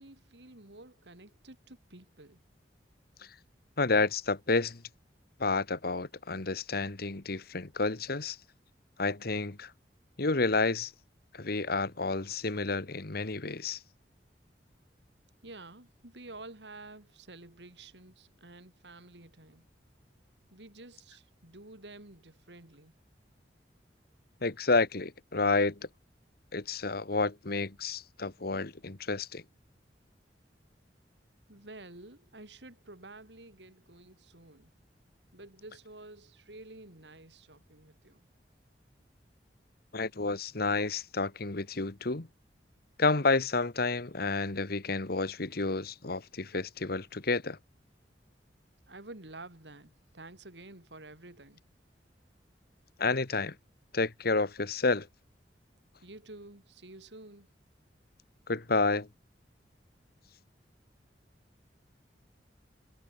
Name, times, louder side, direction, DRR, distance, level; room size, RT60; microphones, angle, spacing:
voice 1, 0.0-2.4 15.4-19.7 20.5-23.0 31.5-34.8 35.3-38.3 48.9-51.6 56.0-57.5, right 2 dB, 85° right, 3.7 m, -50 dB
voice 2, 3.8-4.8 5.4-8.4 9.0-9.7 10.2-10.9 11.3-13.8 24.4-25.8 26.5-29.4 39.9-42.3 43.0-47.6 53.0-53.5 53.9-55.1 58.5-59.1, left 3 dB, 60° left, 1.5 m, -30 dB
head